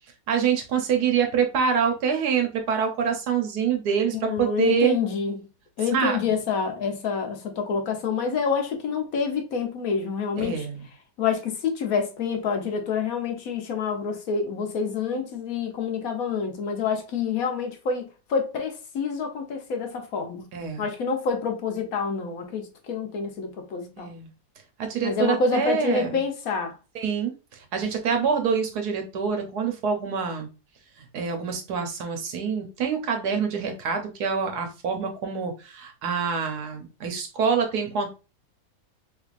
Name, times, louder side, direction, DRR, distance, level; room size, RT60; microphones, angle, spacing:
voice 1, 0.3-5.0 5.9-6.3 10.4-10.9 20.5-20.9 24.0-24.3 24.8-26.1 26.9-30.5 31.1-38.1, right 6 dB, 75° right, 1.3 m, -26 dB
voice 2, 4.2-5.5 5.8-10.7 11.2-20.5 20.8-24.1 25.0-26.8, left 5 dB, 65° left, 1.1 m, -27 dB
3.5 x 3.2 x 2.4 m
omnidirectional pair, 1.7 m